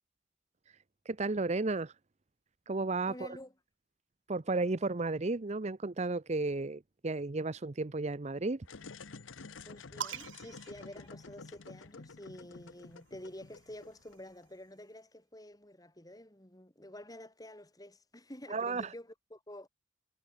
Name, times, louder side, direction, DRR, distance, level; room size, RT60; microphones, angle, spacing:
voice 1, 1.1-1.9 2.7-3.3 4.3-8.7 18.5-18.9, right 3 dB, 35° right, 0.7 m, -33 dB
voice 2, 3.1-3.5 9.6-19.7, left 1 dB, 20° left, 3.3 m, -49 dB
sound 1, 8.6-14.5, left 4 dB, 90° left, 1.0 m, -50 dB
sound 2, 10.0-11.8 12.9-14.6, right 8 dB, 75° right, 0.7 m, -46 dB
head